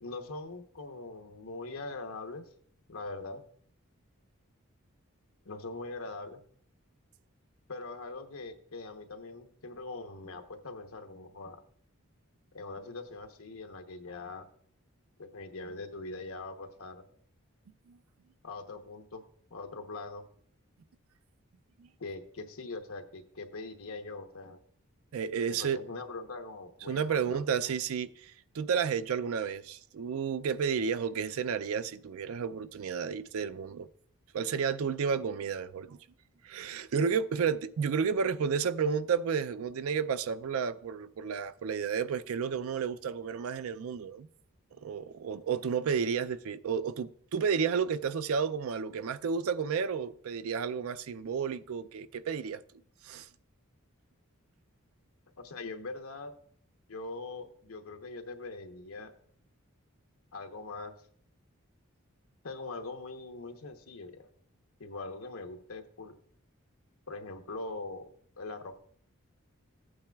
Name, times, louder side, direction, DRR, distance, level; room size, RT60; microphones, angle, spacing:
voice 1, 0.0-2.4 2.9-3.4 5.4-6.4 7.7-11.6 12.5-14.5 15.2-17.0 18.4-19.2 19.5-20.2 22.0-24.6 25.5-27.7 55.4-56.3 56.9-59.1 60.3-60.9 62.4-64.2 64.8-66.1 67.1-68.1 68.4-68.8, left 3 dB, 75° left, 0.9 m, -42 dB
voice 2, 25.1-25.8 26.9-33.9 34.3-36.0 36.4-44.3 44.8-52.6 53.0-53.3, right 6 dB, 75° right, 0.4 m, -31 dB
14.5 x 8.7 x 2.3 m
head